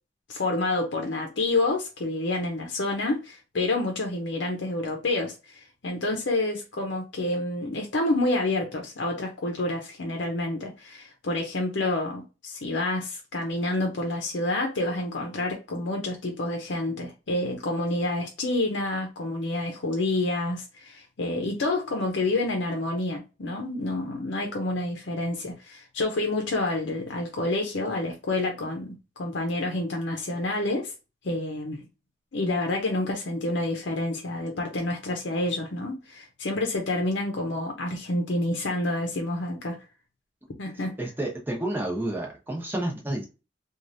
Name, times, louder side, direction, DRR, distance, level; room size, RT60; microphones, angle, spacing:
voice 1, 0.3-28.9 29.2-30.9 31.2-31.8 32.3-39.8 40.6-40.9, left 2 dB, 80° left, 0.6 m, -28 dB
voice 2, 41.0-43.3, right 1 dB, 10° right, 0.9 m, -30 dB
3.1 x 2.4 x 2.5 m
head